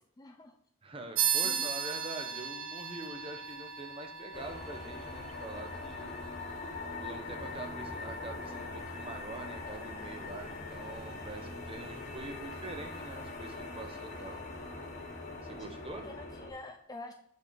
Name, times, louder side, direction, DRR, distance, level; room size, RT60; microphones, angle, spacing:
voice 1, 0.2-0.6 1.4-1.7 15.9-17.1, left 2 dB, 20° left, 5 dB, 0.4 m, -46 dB
voice 2, 0.8-6.1 7.0-14.4 15.4-16.0, right 2 dB, 30° right, 4 dB, 0.9 m, -44 dB
sound 1, 1.2-11.1, right 8 dB, 80° right, 0.9 m, -38 dB
sound 2, 4.3-16.5, left 3 dB, 40° left, 1.3 m, -42 dB
6.5 x 5.3 x 5.0 m, 0.71 s
head